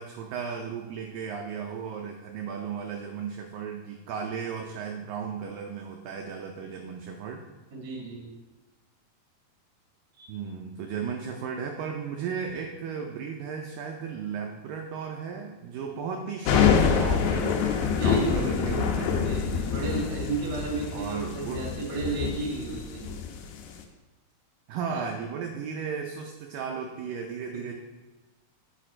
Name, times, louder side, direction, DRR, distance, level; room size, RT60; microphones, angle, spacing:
voice 1, 0.0-7.4 10.3-19.3 20.9-21.7 24.7-27.7, right 6 dB, 85° right, 2 dB, 1.9 m, -35 dB
voice 2, 7.7-8.3 10.2-10.3 17.9-23.3 24.9-25.1 27.5-27.7, right 3 dB, 35° right, -3 dB, 1.0 m, -34 dB
sound 1, 16.5-23.8, left 7 dB, 85° left, 2.8 m, -26 dB
9.7 x 5.0 x 4.3 m, 1.1 s
omnidirectional pair, 4.6 m